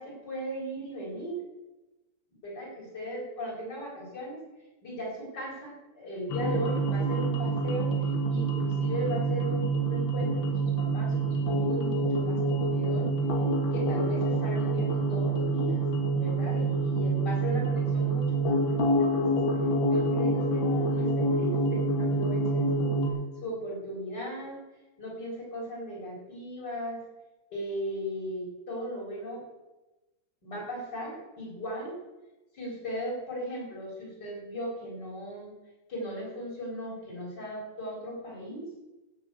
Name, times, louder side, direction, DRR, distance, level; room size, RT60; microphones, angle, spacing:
voice 1, 0.0-1.4 2.4-4.4 4.8-8.0 8.3-13.1 13.7-15.8 16.1-19.4 19.9-23.0 23.4-24.7 25.0-27.0 27.5-29.4 30.4-32.0 32.5-35.5 35.9-38.6, equal, 60° left, -3 dB, 5.0 m, -37 dB
sound 1, 6.3-23.1, right 2 dB, 80° left, 2.6 m, -27 dB
16.5 x 6.4 x 7.6 m, 1.1 s
omnidirectional pair, 2.1 m